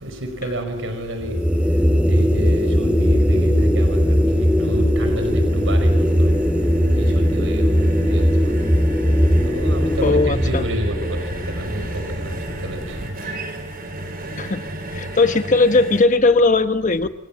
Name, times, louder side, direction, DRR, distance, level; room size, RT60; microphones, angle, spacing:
voice 1, 0.0-1.4 2.1-6.3 6.9-7.7 8.1-8.2 9.4-11.9 12.1-12.3 12.6-13.0, equal, 70° right, 5.4 m, -29 dB
sound 1, 1.2-12.5, equal, 5° right, 2.4 m, -19 dB
sound 2, 1.8-16.0, right 1 dB, 50° right, 5.8 m, -35 dB
sound 3, 4.9-13.1, left 1 dB, 65° left, 3.1 m, -36 dB
voice 2, 10.0-10.6 14.4-14.6 14.9-17.1, left 3 dB, 40° left, 1.2 m, -18 dB
28.0 x 27.0 x 7.5 m
head